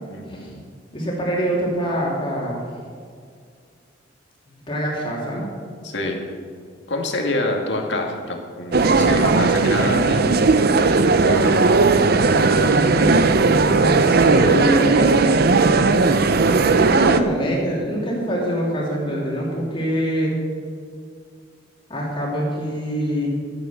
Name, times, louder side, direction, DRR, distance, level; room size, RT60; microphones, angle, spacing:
voice 1, 0.1-0.6 5.8-6.2 6.9-10.2 11.2-11.6, left 2 dB, 65° left, 1 dB, 2.1 m, -26 dB
voice 2, 0.9-2.7 4.5-5.5 12.6-15.2 16.9-20.4 21.9-23.3, equal, 25° left, -4 dB, 3.0 m, -24 dB
sound 1, 8.7-17.2, right 3 dB, 55° right, 0.6 m, -16 dB
12.5 x 9.6 x 7.2 m, 2.1 s
head